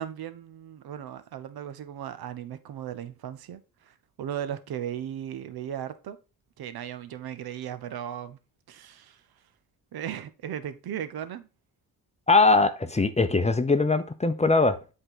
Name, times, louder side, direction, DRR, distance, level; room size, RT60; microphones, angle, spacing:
voice 1, 0.0-6.2 6.6-8.4 8.7-9.2 9.9-11.5, right 10 dB, 65° right, 0.8 m, -37 dB
voice 2, 12.3-14.8, left 3 dB, 15° left, 0.7 m, -21 dB
7.8 x 3.8 x 3.8 m
supercardioid pair, 55°, 39 cm